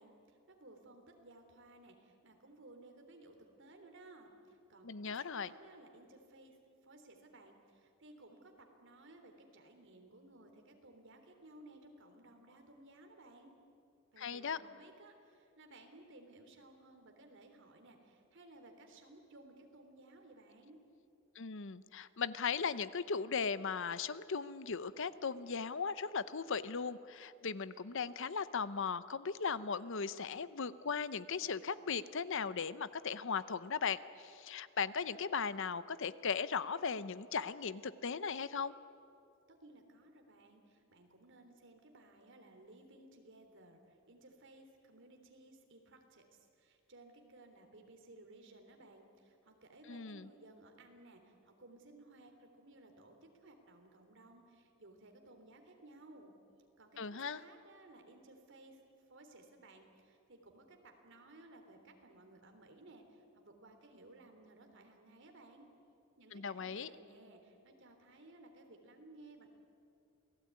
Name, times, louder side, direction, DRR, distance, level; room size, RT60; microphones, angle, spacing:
voice 1, 0.0-6.6 6.8-13.5 14.1-20.8 39.5-56.3 56.8-58.8 59.1-65.6 66.2-69.5, right 2 dB, 65° right, 4 dB, 3.5 m, -59 dB
voice 2, 4.8-5.5 14.2-14.6 21.4-38.7 49.9-50.3 57.0-57.4 66.3-66.9, left 5 dB, 65° left, 15 dB, 0.8 m, -38 dB
28.0 x 19.0 x 9.6 m, 2.6 s
head